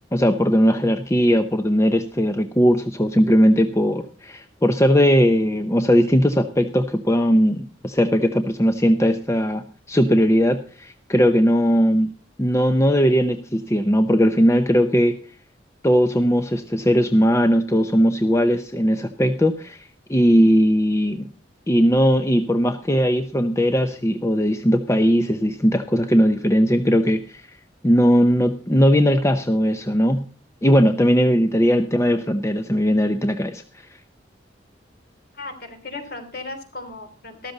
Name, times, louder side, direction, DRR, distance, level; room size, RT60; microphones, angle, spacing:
voice 1, 0.1-12.1 12.4-15.2 15.8-21.3 21.7-27.4 27.8-30.2 30.6-33.9, equal, 15° left, 8 dB, 0.6 m, -19 dB
voice 2, 35.3-37.5, left 3 dB, 55° left, 7 dB, 3.0 m, -36 dB
13.5 x 13.0 x 3.9 m, 0.37 s
head